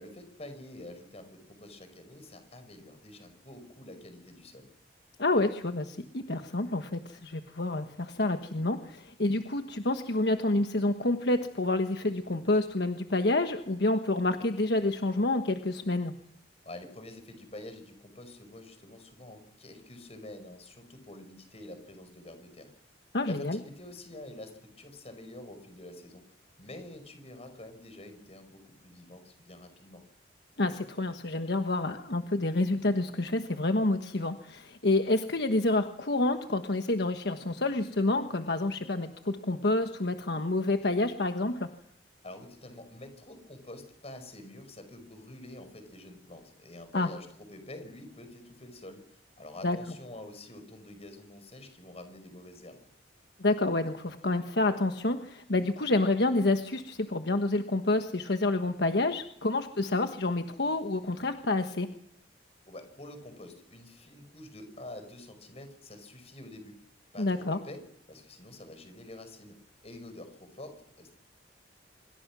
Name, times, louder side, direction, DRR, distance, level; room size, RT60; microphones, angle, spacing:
voice 1, 0.0-4.7 16.6-22.7 23.3-26.2 26.6-30.0 42.2-52.8 62.7-66.8 67.1-67.8 68.1-69.5 69.8-71.1, left 1 dB, 35° left, 8 dB, 5.4 m, -47 dB
voice 2, 5.2-16.1 23.1-23.6 30.6-41.7 46.9-47.1 49.6-49.8 53.4-61.9 67.2-67.6, left 2 dB, 60° left, 6 dB, 1.3 m, -28 dB
26.0 x 23.0 x 6.2 m, 0.71 s
head